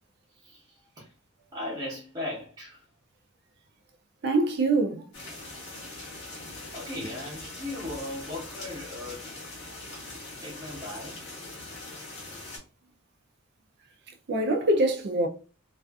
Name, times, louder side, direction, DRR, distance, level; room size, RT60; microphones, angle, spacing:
voice 1, 1.5-2.8 6.7-9.2 10.4-11.2, left 1 dB, 20° right, 0.8 m, -37 dB
voice 2, 4.2-5.0 14.3-15.3, right 2 dB, 50° right, 0.4 m, -24 dB
sound 1, 5.1-12.6, left 2 dB, 55° left, 0.9 m, -42 dB
2.4 x 2.4 x 2.3 m
head